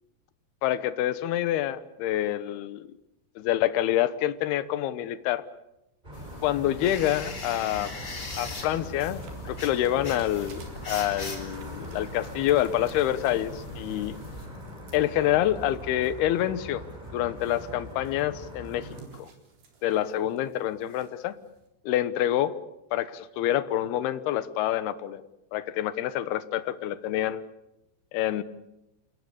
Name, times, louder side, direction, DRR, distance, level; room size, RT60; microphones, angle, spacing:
voice 1, 0.6-2.9 3.4-5.5 6.4-8.0 8.4-14.2 14.9-16.8 17.1-18.9 19.1-19.3 19.8-21.4 21.9-22.5 22.9-25.2 25.5-27.4 28.1-28.4, left 12 dB, 70° left, 14 dB, 2.8 m, -27 dB
sound 1, 6.0-19.0, equal, 10° right, 5.1 m, -42 dB
sound 2, 6.1-14.5, left 2 dB, 25° left, 4.5 m, -40 dB
sound 3, 7.2-21.7, right 4 dB, 60° right, 5.8 m, -56 dB
28.5 x 20.0 x 8.5 m, 0.89 s
omnidirectional pair, 5.2 m